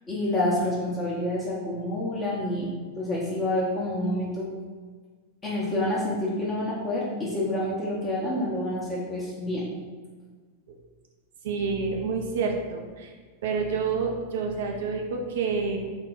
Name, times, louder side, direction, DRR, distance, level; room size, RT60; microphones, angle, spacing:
voice 1, 0.1-4.5 5.4-9.6, left 1 dB, 20° left, -6 dB, 0.9 m, -28 dB
voice 2, 11.4-13.1 13.4-15.8, right 5 dB, 55° right, 2 dB, 0.4 m, -28 dB
4.5 x 2.2 x 4.0 m, 1.4 s
figure-of-eight pair, 90°, 0 cm